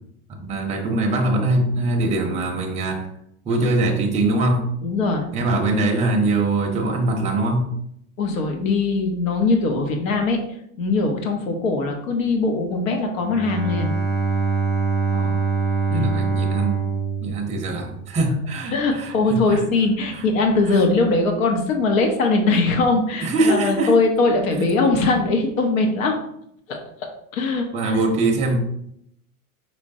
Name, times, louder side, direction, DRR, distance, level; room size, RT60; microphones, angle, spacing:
voice 1, 0.4-3.1 3.4-4.7 5.3-7.8 15.1-15.4 15.9-16.8 17.2-19.6 20.1-20.3 20.7-20.8 23.2-24.0 27.7-28.6, right 2 dB, 15° right, 2 dB, 0.7 m, -22 dB
voice 2, 4.8-5.3 8.2-10.4 10.8-14.0 15.9-16.1 18.7-26.2 26.7-26.8 27.3-28.0, left 3 dB, 65° left, 4 dB, 1.0 m, -21 dB
Bowed string instrument, 13.2-18.2, right 4 dB, 25° left, 1.1 m, -24 dB
4.9 x 3.2 x 2.6 m, 0.73 s
hypercardioid pair, 125°, 43 cm